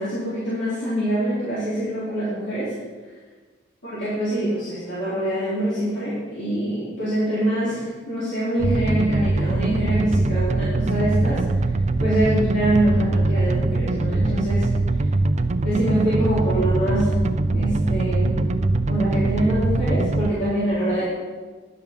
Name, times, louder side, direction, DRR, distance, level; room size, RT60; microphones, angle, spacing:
voice 1, 0.0-2.7 3.8-11.4 12.0-14.7 15.6-17.1 17.5-18.5 18.9-21.1, right 1 dB, 70° left, -12 dB, 3.7 m, -24 dB
sound 1, 8.6-20.3, right 2 dB, 40° right, 0.5 m, -22 dB
10.5 x 6.8 x 5.3 m, 1.4 s
head